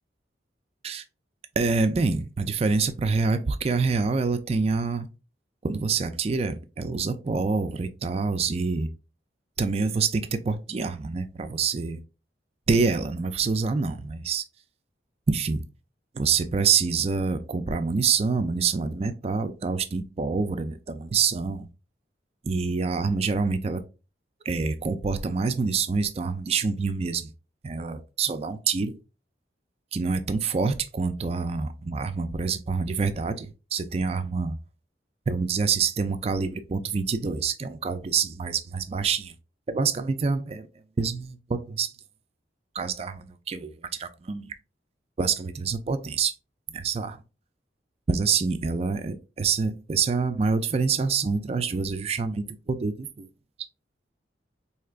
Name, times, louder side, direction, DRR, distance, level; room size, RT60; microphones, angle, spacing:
voice 1, 1.6-5.1 5.6-8.9 9.6-12.0 12.7-14.4 15.3-15.6 16.1-21.7 22.4-23.8 24.5-27.3 27.6-29.0 29.9-34.6 35.3-39.3 39.7-40.7 41.0-41.9 42.7-44.5 45.2-46.3 46.7-47.2 48.1-53.3, right 5 dB, 35° right, 0.4 m, -26 dB
4.5 x 2.9 x 2.4 m
head